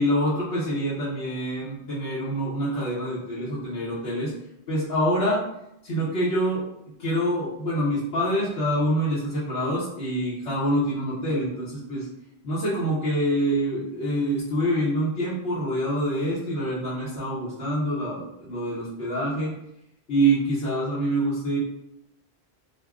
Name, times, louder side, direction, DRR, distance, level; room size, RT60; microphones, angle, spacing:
voice 1, 0.0-4.3 4.7-5.4 5.8-6.7 7.0-12.1 12.4-19.5 20.1-21.6, right 1 dB, 85° left, -8 dB, 1.3 m, -26 dB
6.6 x 2.2 x 2.4 m, 0.79 s
omnidirectional pair, 1.1 m